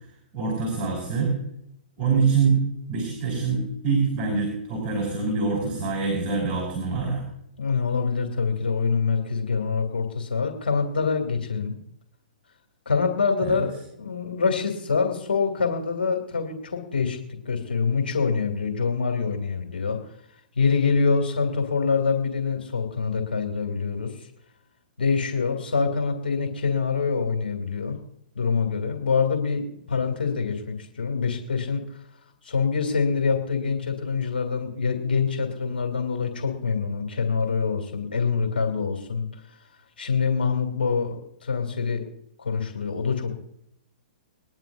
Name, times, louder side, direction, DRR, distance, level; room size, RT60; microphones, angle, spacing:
voice 1, 0.3-1.3 2.0-2.6 2.9-7.2 13.4-13.6, right 5 dB, 25° right, -1 dB, 5.3 m, -25 dB
voice 2, 7.6-11.8 12.9-17.2 17.4-20.0 20.6-24.1 25.0-28.0 28.3-32.0 32.4-39.4 40.0-42.1 42.4-43.5, left 5 dB, 90° left, 4 dB, 2.6 m, -25 dB
22.0 x 11.0 x 2.6 m, 0.74 s
hypercardioid pair, 130°, 5 cm